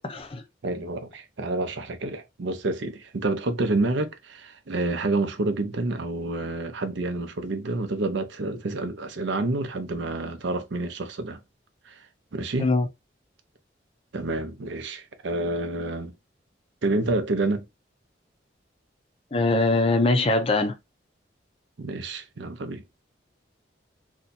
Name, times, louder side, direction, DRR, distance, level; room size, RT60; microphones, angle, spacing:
voice 1, 0.0-0.4 12.6-12.9 19.3-20.8, left 2 dB, 30° left, 0.5 m, -22 dB
voice 2, 0.6-11.4 11.9-12.0 12.3-12.7 14.1-16.1 16.8-17.6 21.8-22.8, right 2 dB, 75° right, 0.6 m, -28 dB
2.7 x 2.2 x 3.9 m
head